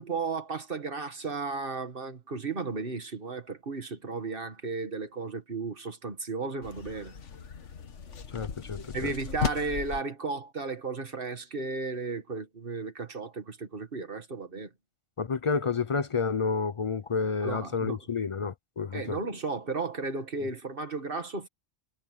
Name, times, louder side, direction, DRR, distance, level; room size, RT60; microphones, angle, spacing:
voice 1, 0.0-7.2 8.9-14.7 17.4-18.0 18.9-21.5, right 4 dB, 45° right, 2.0 m, -34 dB
sound 1, 6.6-10.0, left 6 dB, 70° left, 1.6 m, -36 dB
voice 2, 8.3-9.1 15.2-19.2, left 5 dB, 50° left, 0.3 m, -30 dB
omnidirectional pair, 1.3 m